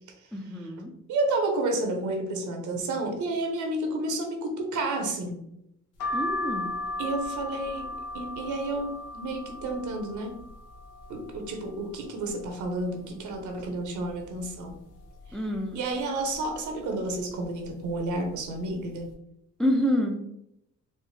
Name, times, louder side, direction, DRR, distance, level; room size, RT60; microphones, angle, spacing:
voice 1, 0.3-0.9 6.1-6.7 15.3-15.8 19.6-20.2, equal, ahead, 2 dB, 0.4 m, -27 dB
voice 2, 1.1-5.4 7.0-10.4 11.1-14.7 15.7-19.1, right 2 dB, 75° right, 3 dB, 0.9 m, -31 dB
sound 1, 6.0-11.7 12.1-12.9 13.3-13.4 13.6-14.7 15.2-15.5 16.3-16.6 17.4-17.7 17.9-18.1, left 1 dB, 85° left, 0.9 m, -36 dB
4.3 x 2.0 x 3.2 m, 0.79 s
cardioid pair, 90°, 30 cm